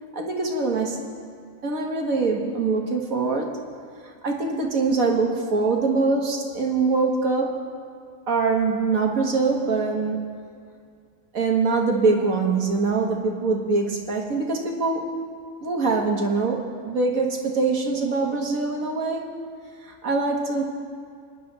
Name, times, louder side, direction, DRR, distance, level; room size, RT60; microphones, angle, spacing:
voice 1, 0.1-1.1 1.6-3.6 4.2-7.6 8.3-10.2 11.3-15.2 15.6-19.3 19.8-20.8, right 4 dB, 85° right, 1 dB, 2.0 m, -23 dB
25.5 x 10.0 x 3.3 m, 2.3 s
omnidirectional pair, 1.4 m